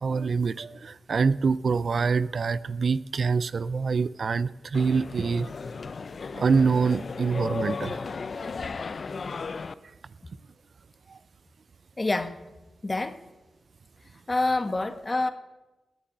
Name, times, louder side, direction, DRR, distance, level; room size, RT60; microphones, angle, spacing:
voice 1, 0.0-5.5 6.3-8.0 11.1-11.2, right 5 dB, 65° right, 17 dB, 0.5 m, -25 dB
sound 1, 4.7-9.7, left 4 dB, 60° left, 0.7 m, -35 dB
voice 2, 12.0-12.4 12.8-13.2 14.3-15.3, left 2 dB, 35° left, 9 dB, 1.8 m, -27 dB
18.0 x 7.3 x 9.4 m, 1.0 s
supercardioid pair, 40°, 0 cm